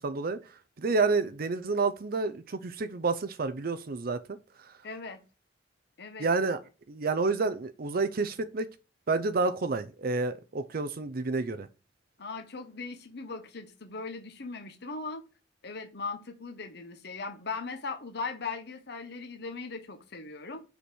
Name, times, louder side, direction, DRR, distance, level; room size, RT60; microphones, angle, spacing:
voice 1, 0.0-4.7 6.2-6.6 6.9-8.7 9.1-11.7, right 3 dB, 50° right, 0.6 m, -29 dB
voice 2, 4.8-5.2 6.0-6.3 12.2-15.2 15.6-20.6, left 4 dB, 60° left, 1.1 m, -39 dB
5.1 x 5.1 x 6.2 m
head